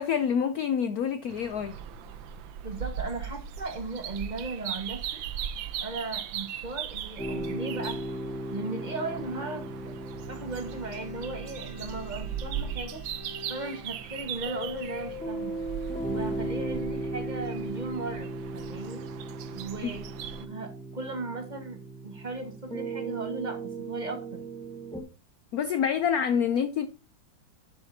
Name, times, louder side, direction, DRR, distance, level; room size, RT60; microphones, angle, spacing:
voice 1, 0.0-1.8 19.8-19.9 25.5-26.9, left 7 dB, 65° left, 0.9 m, -27 dB
sound 1, 1.3-20.5, right 9 dB, 80° right, 1.5 m, -39 dB
voice 2, 2.6-5.2 5.8-8.0 8.5-9.9 10.3-13.0 13.5-15.6 16.0-19.0 19.5-20.0 20.4-24.4, right 3 dB, 25° right, 1.4 m, -37 dB
sound 2, 7.2-25.0, right 1 dB, 5° left, 0.7 m, -37 dB
Bowed string instrument, 10.2-13.9, left 6 dB, 90° left, 3.6 m, -47 dB
11.0 x 7.4 x 2.8 m
omnidirectional pair, 2.1 m